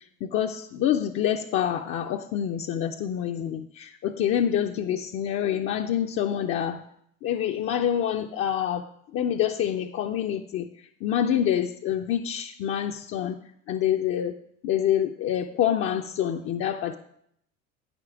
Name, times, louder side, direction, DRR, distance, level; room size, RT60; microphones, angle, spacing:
voice 1, 0.2-6.8 7.2-10.7 11.0-13.4 13.7-14.3 14.6-16.9, left 10 dB, 35° left, 3 dB, 0.4 m, -26 dB
9.3 x 5.1 x 4.8 m, 0.71 s
hypercardioid pair, 75°, 41 cm